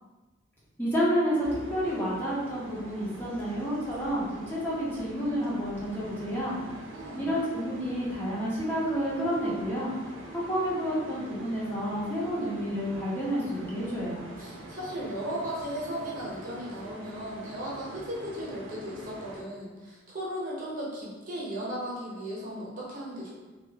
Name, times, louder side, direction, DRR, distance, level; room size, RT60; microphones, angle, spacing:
voice 1, 0.8-6.6 7.2-9.9 10.3-14.2, equal, 10° left, -8 dB, 0.6 m, -30 dB
sound 1, 1.4-19.4, right 1 dB, 80° right, 0.5 m, -45 dB
voice 2, 6.7-7.4 14.4-23.3, equal, 45° right, -6 dB, 0.8 m, -36 dB
2.7 x 2.3 x 2.7 m, 1.2 s
head